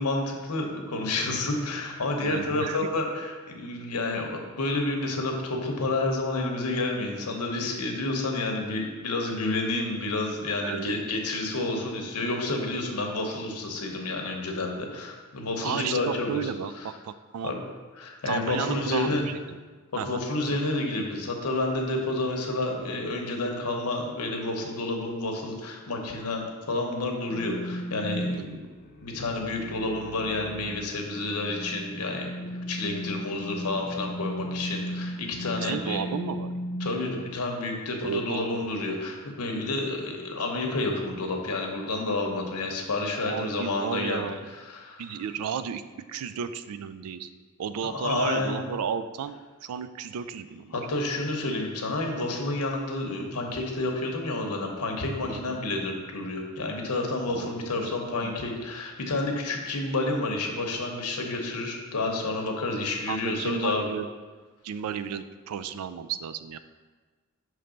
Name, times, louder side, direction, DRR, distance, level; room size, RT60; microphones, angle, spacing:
voice 1, 0.0-16.5 16.7-16.9 17.4-17.6 18.0-19.2 19.9-28.6 29.0-36.0 36.8-45.2 47.8-48.6 50.7-63.8, left 2 dB, 90° left, 2 dB, 0.9 m, -30 dB
voice 2, 2.2-2.8 10.6-11.0 15.6-17.5 18.3-19.6 20.0-20.2 35.6-36.5 38.0-38.7 43.1-44.5 45.0-45.8 46.1-47.3 47.6-49.4 49.6-50.8 55.3-55.6 57.3-57.9 58.2-58.3 63.1-64.1 64.6-66.6, right 7 dB, 80° right, 12 dB, 0.3 m, -33 dB
sound 1, 27.3-36.9, equal, 40° left, 0.7 m, -36 dB
5.8 x 3.2 x 5.1 m, 1.3 s
head